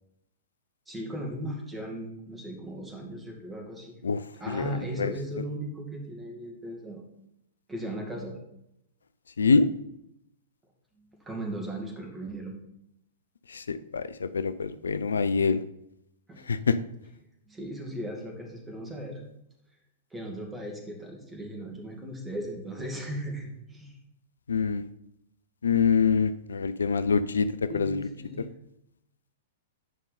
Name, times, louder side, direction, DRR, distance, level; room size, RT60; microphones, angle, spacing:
voice 1, 0.9-3.9 4.4-7.0 7.7-8.3 11.0-12.6 16.3-16.4 17.5-19.2 20.1-24.0 27.7-28.5, right 1 dB, 10° right, 1 dB, 2.2 m, -37 dB
voice 2, 9.4-9.7 13.5-15.6 16.5-16.7 24.5-24.8 25.6-27.5 27.7-28.1, left 5 dB, 75° left, 13 dB, 0.4 m, -25 dB
9.2 x 5.3 x 4.3 m, 0.79 s
figure-of-eight pair, 105°, 0 cm